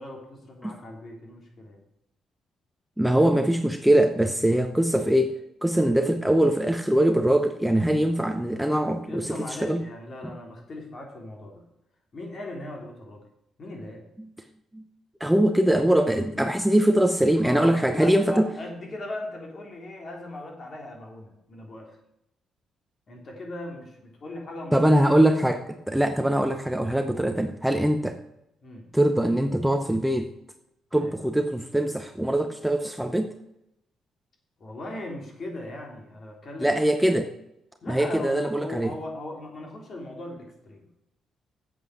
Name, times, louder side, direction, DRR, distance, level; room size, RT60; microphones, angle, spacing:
voice 1, 0.0-1.8 9.1-11.6 12.1-13.2 13.6-14.1 17.4-22.0 23.1-24.8 28.6-28.9 31.0-31.1 34.6-36.7 37.8-40.8, left 1 dB, 45° left, 1 dB, 3.1 m, -39 dB
voice 2, 3.0-5.3 5.6-9.3 9.6-9.8 14.7-14.8 15.2-18.5 24.7-28.2 28.9-30.3 30.9-33.3 36.6-37.3 37.9-38.9, right 1 dB, 5° right, 7 dB, 0.7 m, -22 dB
8.2 x 7.8 x 6.1 m, 0.82 s
cardioid pair, 90°, 0 cm